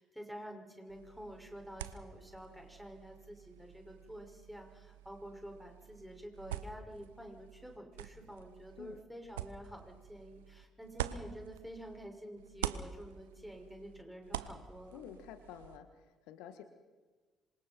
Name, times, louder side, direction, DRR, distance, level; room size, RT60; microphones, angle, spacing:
voice 1, 0.0-15.0, equal, ahead, 2 dB, 5.9 m, -49 dB
sound 1, 0.9-12.1 12.4-15.8, right 12 dB, 75° right, 0.9 m, -46 dB
voice 2, 14.9-16.6, left 9 dB, 65° left, 9 dB, 1.6 m, -50 dB
26.5 x 24.5 x 4.5 m, 1.3 s
figure-of-eight pair, 50°, 0 cm